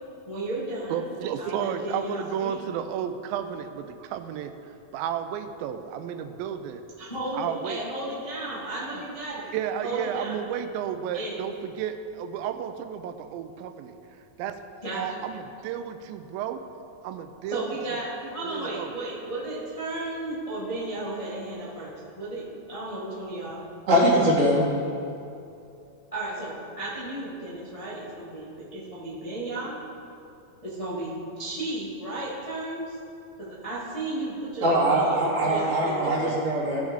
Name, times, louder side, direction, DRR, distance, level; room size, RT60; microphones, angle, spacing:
voice 1, 0.3-1.0 1.4-2.6 7.0-9.4 9.8-10.4 11.1-11.4 14.8-15.0 17.5-23.6 26.1-29.8 30.6-33.0 33.4-36.4, right 2 dB, 60° left, -8 dB, 0.3 m, -34 dB
voice 2, 0.9-6.8 7.3-7.8 8.4-8.5 8.9-9.0 9.3-14.0 14.4-14.6 14.9-16.6 17.0-17.7 18.4-18.9, right 9 dB, 90° right, 9 dB, 2.3 m, -32 dB
voice 3, 23.9-24.6 34.6-36.8, right 1 dB, 45° right, -8 dB, 3.2 m, -22 dB
15.5 x 6.3 x 3.6 m, 2.6 s
omnidirectional pair, 4.1 m